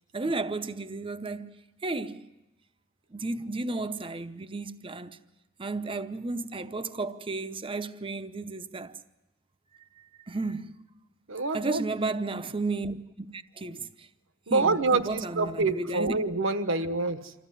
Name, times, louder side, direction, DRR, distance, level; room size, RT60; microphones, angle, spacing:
voice 1, 0.1-1.5 1.8-2.3 3.1-5.1 5.6-8.9 10.3-10.7 11.5-14.1 14.5-16.2, right 3 dB, 25° right, 0.8 m, -33 dB
voice 2, 11.3-11.9 14.5-17.3, right 3 dB, 65° right, 1.2 m, -27 dB
26.0 x 14.5 x 9.9 m
head